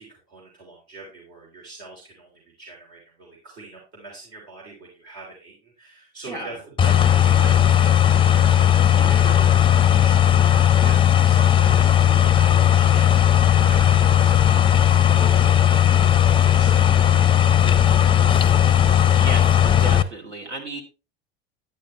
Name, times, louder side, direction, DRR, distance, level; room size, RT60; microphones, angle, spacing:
voice 1, 0.0-8.6 8.9-10.3 10.7-17.3, right 3 dB, 65° right, -2 dB, 3.2 m, -42 dB
sound 1, 6.8-20.0, left 10 dB, 15° left, 0.5 m, -16 dB
voice 2, 19.1-20.8, right 1 dB, 85° right, 0 dB, 2.4 m, -33 dB
10.5 x 9.1 x 3.1 m, 0.30 s
figure-of-eight pair, 75°, 34 cm